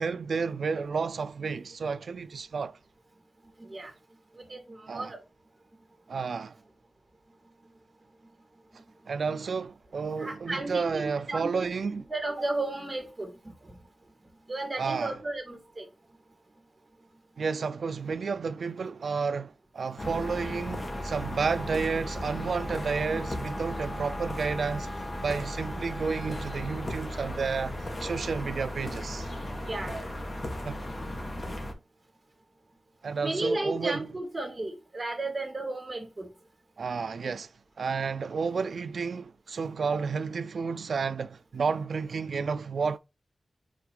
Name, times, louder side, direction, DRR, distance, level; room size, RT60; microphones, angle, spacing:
voice 1, 0.0-2.8 4.9-5.1 6.1-6.6 9.1-12.0 14.8-15.2 17.4-24.9 25.2-27.7 28.0-29.3 30.6-30.8 33.0-34.1 36.8-37.5 37.8-43.0, right 5 dB, 70° right, 0.4 m, -31 dB
voice 2, 3.6-3.9 4.3-5.2 10.2-11.5 11.9-13.8 14.5-15.9 23.1-23.2 23.6-23.7 25.1-25.2 29.6-30.1 33.2-36.3, right 2 dB, 25° right, 2.4 m, -34 dB
sound 1, 20.0-31.7, left 1 dB, 30° left, 1.4 m, -35 dB
5.1 x 3.8 x 4.9 m
wide cardioid pair, 135°, 0 cm